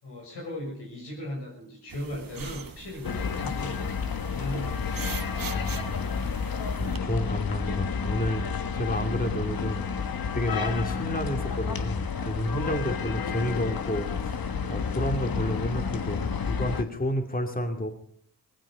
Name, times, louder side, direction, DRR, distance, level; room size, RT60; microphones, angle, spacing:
voice 1, 0.0-5.0, left 1 dB, 90° left, 0 dB, 6.4 m, -37 dB
sound 1, 1.9-7.0, right 7 dB, 55° right, 1.3 m, -42 dB
sound 2, 3.0-16.8, left 6 dB, 60° left, 1.5 m, -30 dB
voice 2, 5.4-6.1 6.7-17.9, equal, 20° left, 5 dB, 2.5 m, -31 dB
18.0 x 15.5 x 5.2 m, 0.63 s
cardioid pair, 50°, 40 cm